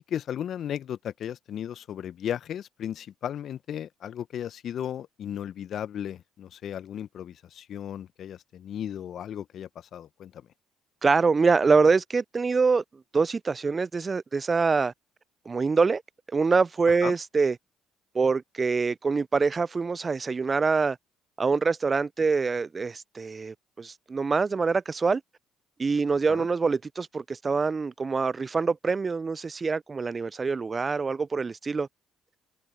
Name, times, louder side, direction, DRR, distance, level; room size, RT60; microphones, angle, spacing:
voice 1, 0.0-10.5 17.0-17.1 26.3-26.5, left 10 dB, 55° left, 1.3 m, -35 dB
voice 2, 11.0-12.8 13.1-14.9 15.5-16.0 16.3-17.5 18.1-21.0 21.4-25.2 25.8-31.9, right 4 dB, 35° right, 0.5 m, -25 dB
hypercardioid pair, 50°, 0 cm